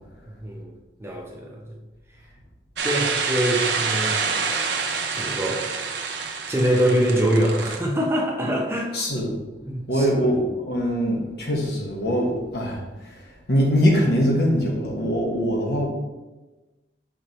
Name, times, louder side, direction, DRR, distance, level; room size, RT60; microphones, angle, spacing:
voice 1, 0.3-1.8 2.1-2.2 2.8-4.4 5.1-5.7 6.5-9.1 9.6-10.1 10.3-10.4, right 1 dB, 15° right, -1 dB, 0.7 m, -24 dB
sound 1, 2.8-7.8, right 5 dB, 80° right, 0.8 m, -27 dB
voice 2, 8.9-9.4 9.9-15.9, equal, 65° left, 0 dB, 1.2 m, -23 dB
6.5 x 4.9 x 3.0 m, 1.1 s
head